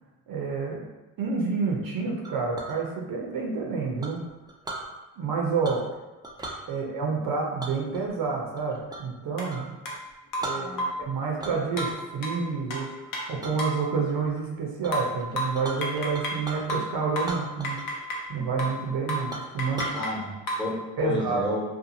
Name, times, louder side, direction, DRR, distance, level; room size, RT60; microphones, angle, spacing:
voice 1, 0.3-0.8 1.2-4.2 5.2-5.8 6.7-9.7 10.4-10.7 11.1-17.8 18.3-19.9 21.0-21.4, right 4 dB, 55° right, -1 dB, 0.7 m, -29 dB
Chink clink, 2.2-2.8 4.0-4.9 5.6-5.9 6.2-6.6 7.6-9.1 9.5-9.7 10.1-10.2 10.4-11.0 11.4-12.0 12.4-12.8 13.4-13.6 14.1-14.4 14.8-14.9 15.2-16.8 17.2-18.0 18.3-18.4 18.8-18.9 19.3-20.0, right 2 dB, 10° right, 0.4 m, -38 dB
sound 1, 9.4-9.5 9.9-10.0 10.3-11.1 11.8-13.9 14.9-16.4 16.7-18.3 18.6-18.8 19.1-19.3 19.6-20.7, equal, 55° left, 0.7 m, -32 dB
voice 2, 10.5-11.1 19.9-21.6, left 1 dB, 10° left, -6 dB, 1.1 m, -32 dB
2.6 x 2.4 x 2.7 m, 1.1 s
supercardioid pair, 65°, 41 cm